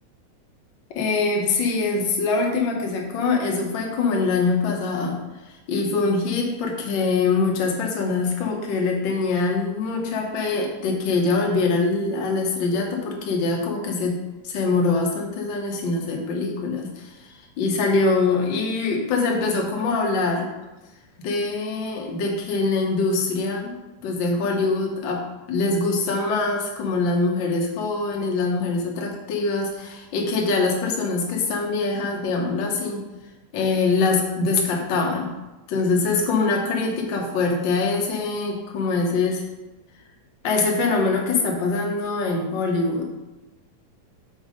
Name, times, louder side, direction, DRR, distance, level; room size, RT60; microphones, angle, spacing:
voice 1, 0.9-14.1 14.4-17.3 17.6-20.5 21.2-23.7 24.0-25.2 25.5-33.0 33.5-35.3 35.7-39.4 40.4-43.1, left 3 dB, 65° left, 0 dB, 1.2 m, -23 dB
6.4 x 4.7 x 5.1 m, 1.1 s
omnidirectional pair, 3.7 m